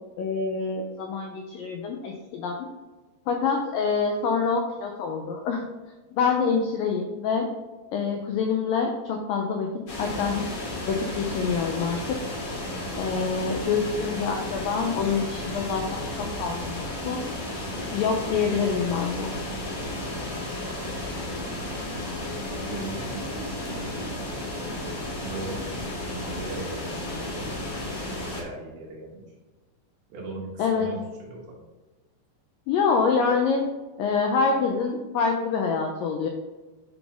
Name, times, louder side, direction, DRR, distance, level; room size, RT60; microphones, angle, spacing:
voice 1, 0.2-2.7 3.3-5.6 6.1-7.5 7.9-9.7 10.0-12.2 13.0-17.2 17.9-19.4 30.6-30.9 32.7-33.6 34.0-36.3, left 5 dB, 85° left, 2 dB, 2.0 m, -26 dB
sound 1, 9.9-28.4, left 1 dB, 50° left, 1.5 m, -33 dB
voice 2, 22.5-27.5 28.3-29.2 30.1-31.4, right 3 dB, 90° right, -4 dB, 4.2 m, -39 dB
10.5 x 4.1 x 3.5 m, 1.2 s
omnidirectional pair, 4.8 m